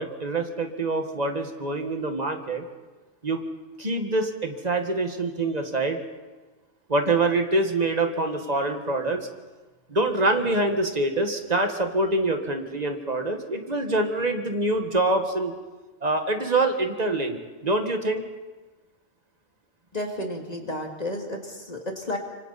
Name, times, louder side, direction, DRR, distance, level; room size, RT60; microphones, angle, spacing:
voice 1, 0.0-2.7 3.2-3.5 3.8-6.0 6.9-9.3 9.9-15.5 16.0-18.2, right 2 dB, 35° right, 5 dB, 1.7 m, -25 dB
voice 2, 19.9-22.2, left 1 dB, 35° left, 2 dB, 2.4 m, -32 dB
26.0 x 24.5 x 4.2 m, 1.3 s
omnidirectional pair, 1.2 m